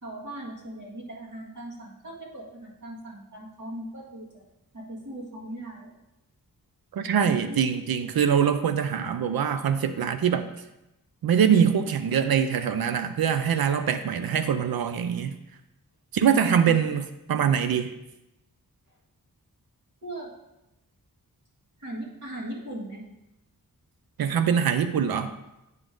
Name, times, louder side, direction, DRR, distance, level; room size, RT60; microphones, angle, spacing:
voice 1, 0.0-4.4 4.7-5.9 7.4-7.8 18.9-19.0 20.0-20.3 21.8-23.0, right 1 dB, 55° right, -5 dB, 1.9 m, -38 dB
voice 2, 6.9-10.5 11.2-15.4 16.1-17.9 24.2-25.3, right 8 dB, 80° right, 9 dB, 0.5 m, -23 dB
9.3 x 5.2 x 3.7 m, 0.93 s
wide cardioid pair, 105°, 35 cm